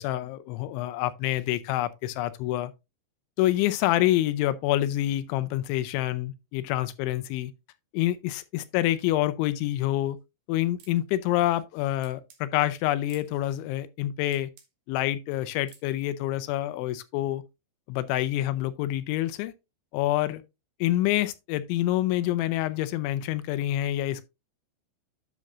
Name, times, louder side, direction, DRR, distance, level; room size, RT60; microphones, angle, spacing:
voice 1, 0.0-2.7 3.4-7.5 7.9-10.2 10.5-14.5 14.9-17.4 17.9-19.5 19.9-20.4 20.8-24.3, left 14 dB, 85° left, 3.1 m, -27 dB
sound 1, 10.8-11.0 12.0-12.4 13.1-13.3 14.3-14.7 15.7-15.9, right 8 dB, 65° right, 3.0 m, -54 dB
10.5 x 6.6 x 2.5 m
omnidirectional pair, 5.3 m